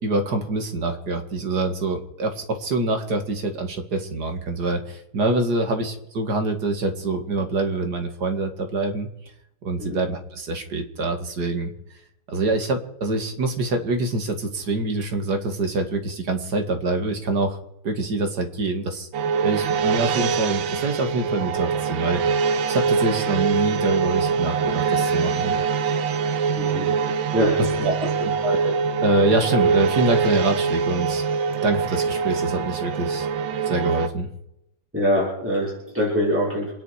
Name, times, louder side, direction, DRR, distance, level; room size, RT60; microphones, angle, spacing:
voice 1, 0.0-9.1 9.6-11.7 12.3-17.6 17.8-19.1 19.4-22.2 22.7-25.5 27.8-28.1 28.4-31.2 31.6-33.3 33.6-34.3, right 2 dB, 55° right, 5 dB, 2.4 m, -25 dB
sound 1, 19.1-34.1, right 5 dB, 75° right, 1.6 m, -23 dB
voice 2, 26.6-26.9 27.3-27.9 34.9-36.7, equal, 5° right, -6 dB, 5.6 m, -24 dB
27.0 x 10.0 x 5.0 m, 0.82 s
omnidirectional pair, 2.1 m